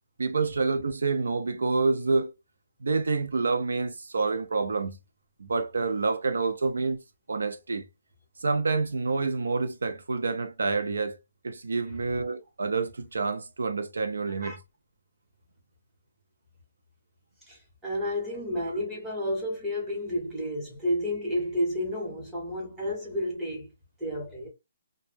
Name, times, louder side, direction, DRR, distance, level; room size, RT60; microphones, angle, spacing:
voice 1, 0.2-2.3 2.8-5.0 5.4-7.0 7.3-7.9 8.4-11.2 11.4-14.6, right 4 dB, 85° right, 0.5 m, -28 dB
voice 2, 17.5-23.7 24.0-24.5, left 1 dB, 5° right, 0.9 m, -31 dB
2.1 x 2.1 x 3.2 m
hypercardioid pair, 170°, 0 cm